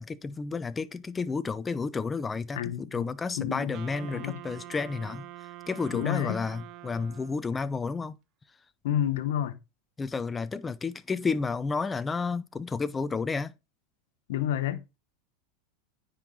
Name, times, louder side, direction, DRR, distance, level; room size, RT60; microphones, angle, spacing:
voice 1, 0.0-5.3 5.7-8.2 10.0-13.5, left 4 dB, 20° left, 0.7 m, -31 dB
voice 2, 2.5-3.1 3.4-3.8 4.1-4.4 5.9-6.4 8.8-9.6 14.3-15.0, left 11 dB, 70° left, 1.1 m, -30 dB
Wind instrument woodwind instrument, 3.7-7.6, right 14 dB, 50° right, 0.9 m, -45 dB
9.6 x 4.6 x 3.9 m
hypercardioid pair, 95°, 0 cm